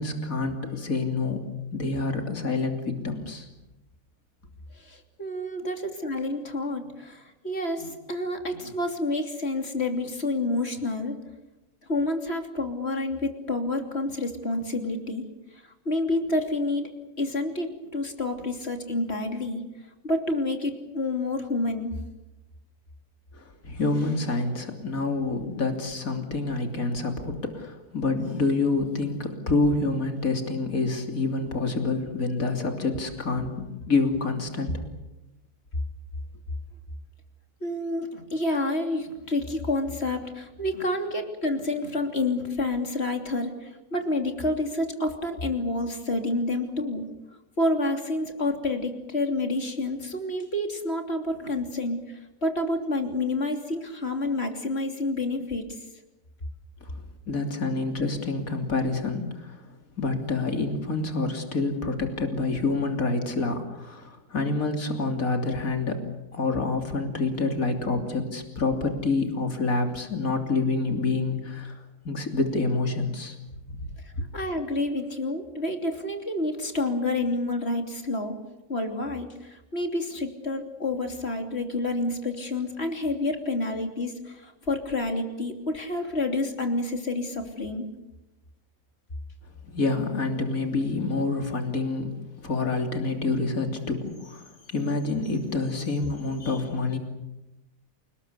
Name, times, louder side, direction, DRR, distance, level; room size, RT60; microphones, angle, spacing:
voice 1, 0.0-1.4 1.7-3.5 23.4-34.8 56.8-56.9 57.3-59.6 60.0-66.0 66.3-71.8 72.0-73.4 73.7-74.2 89.7-92.2 92.4-97.0, left 3 dB, 65° left, 4 dB, 3.6 m, -27 dB
voice 2, 4.8-11.2 11.9-15.2 15.6-16.9 17.2-19.6 20.0-21.9 37.6-47.0 47.6-55.8 74.3-78.4 78.7-87.9, left 2 dB, 45° left, 5 dB, 3.3 m, -29 dB
28.5 x 20.0 x 8.2 m, 0.97 s
omnidirectional pair, 1.6 m